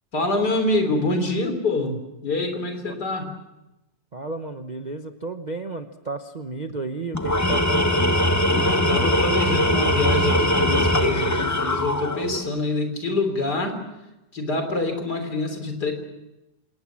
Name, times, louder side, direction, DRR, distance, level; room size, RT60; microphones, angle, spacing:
voice 1, 0.1-3.3 8.5-13.8 14.3-15.9, left 2 dB, 60° left, 6 dB, 4.1 m, -26 dB
voice 2, 4.1-8.1, right 3 dB, 35° right, 6 dB, 0.8 m, -33 dB
Tools, 7.1-12.5, equal, 20° left, 0.4 m, -21 dB
26.0 x 19.5 x 7.5 m, 0.96 s
omnidirectional pair, 2.0 m